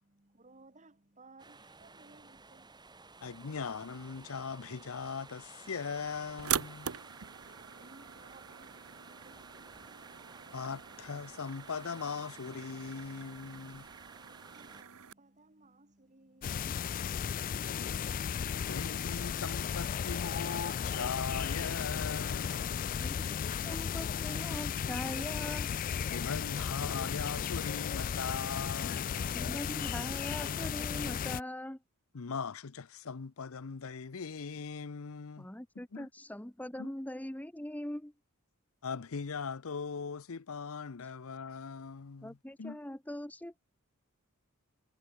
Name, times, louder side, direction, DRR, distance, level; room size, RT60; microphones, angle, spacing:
voice 1, 0.0-3.2 7.2-10.1 12.4-16.9, right 2 dB, 35° right, 2.8 m, -62 dB
sound 1, 1.4-14.8, right 3 dB, 20° right, 2.2 m, -53 dB
voice 2, 3.2-6.9 10.5-13.9 18.7-22.8 26.1-29.3 32.1-35.5 35.8-36.1 36.8-36.9 38.8-42.8, left 5 dB, 70° left, 0.7 m, -40 dB
sound 2, 6.4-15.1, right 9 dB, 85° right, 1.1 m, -42 dB
sound 3, 16.4-31.4, left 7 dB, 40° left, 0.3 m, -35 dB
voice 3, 23.6-25.7 29.3-31.8 35.4-38.1 42.2-43.6, left 1 dB, 5° left, 0.9 m, -41 dB
head